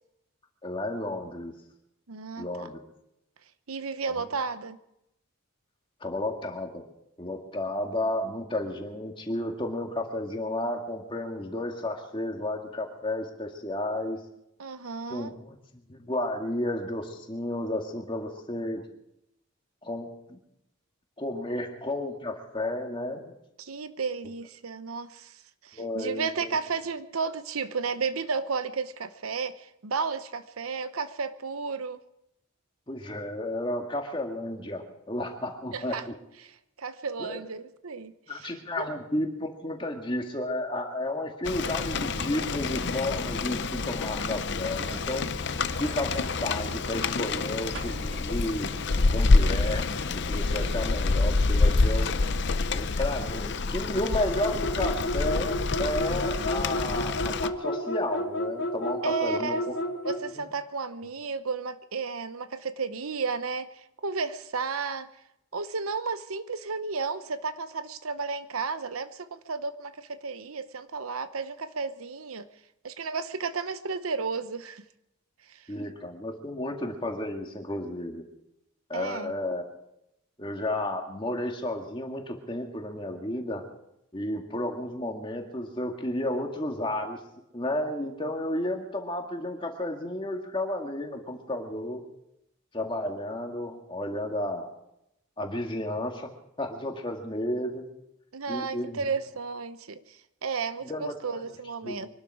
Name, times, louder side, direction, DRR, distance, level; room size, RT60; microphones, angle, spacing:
voice 1, 0.6-1.5 2.4-2.8 4.2-4.3 6.0-6.9 7.2-14.2 15.1-15.5 15.9-18.8 19.8-20.4 21.2-23.3 25.7-26.6 32.9-36.1 37.2-37.4 38.3-45.3 45.8-48.7 49.1-49.8 50.1-52.1 52.7-59.6 60.3-60.5 75.7-78.2 78.9-79.7 80.4-83.6 84.1-87.2 87.5-92.0 92.7-94.7 95.4-96.3 96.6-97.9 98.5-99.1 100.8-101.4 101.8-101.9, left 1 dB, 25° left, 3 dB, 2.0 m, -32 dB
voice 2, 2.1-2.7 3.7-4.8 14.6-15.3 23.6-32.0 35.7-36.0 36.4-38.9 59.0-59.6 60.0-65.1 65.5-72.5 72.8-74.8 75.5-75.7 78.9-79.3 98.3-102.1, right 4 dB, 90° right, 12 dB, 0.9 m, -33 dB
Rain, 41.5-57.5, left 3 dB, 55° left, 0.6 m, -27 dB
sound 1, 41.5-52.5, right 1 dB, 60° right, 1.7 m, -44 dB
sound 2, 54.4-60.3, left 1 dB, 70° left, 2.7 m, -31 dB
24.5 x 12.0 x 4.8 m, 0.83 s
head